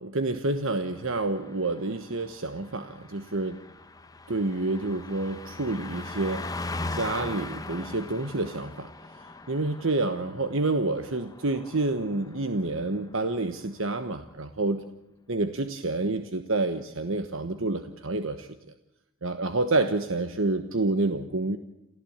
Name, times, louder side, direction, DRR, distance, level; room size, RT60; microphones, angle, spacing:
voice 1, 0.0-3.6 4.3-6.4 6.9-8.9 9.5-14.8 15.3-18.5 19.2-21.6, right 2 dB, 65° right, 8 dB, 1.3 m, -28 dB
Car passing by, 0.7-12.6 12.9-13.1, left 2 dB, 15° left, 1.0 m, -40 dB
28.5 x 14.5 x 8.8 m, 0.89 s
head